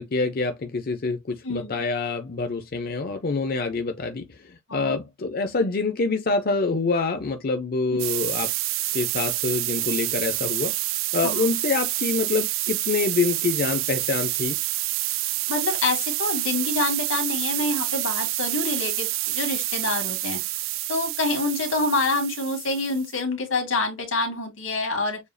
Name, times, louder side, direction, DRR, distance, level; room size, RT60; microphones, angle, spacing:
voice 1, 0.0-8.5 8.9-10.7 11.1-14.6, left 3 dB, 50° left, 0.6 m, -26 dB
voice 2, 1.4-1.8 4.7-5.0 11.2-11.5 15.5-20.4 20.9-25.2, left 2 dB, 90° left, 1.8 m, -27 dB
sound 1, 8.0-23.2, right 17 dB, 80° right, 0.4 m, -28 dB
7.0 x 2.4 x 2.5 m
head